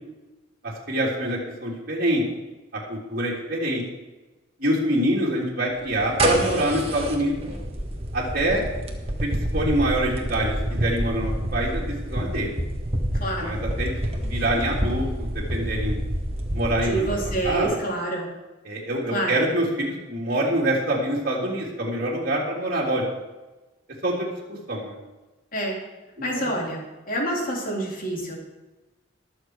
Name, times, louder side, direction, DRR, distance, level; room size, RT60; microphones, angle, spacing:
voice 1, 0.6-2.2 2.9-3.8 4.6-7.3 8.1-8.6 9.2-12.5 13.4-14.0 14.3-16.0 16.5-17.1 17.4-17.7 18.6-23.0 24.0-24.3 24.7-25.0 26.4-26.5, right 1 dB, 50° right, -4 dB, 3.3 m, -25 dB
sound 1, 5.9-17.6, right 1 dB, 30° right, 1.7 m, -28 dB
voice 2, 13.2-13.6 16.8-18.3 19.1-19.4 25.5-25.8 26.2-28.4, right 1 dB, 45° left, -2 dB, 3.5 m, -27 dB
21.0 x 7.2 x 4.8 m, 1.1 s
head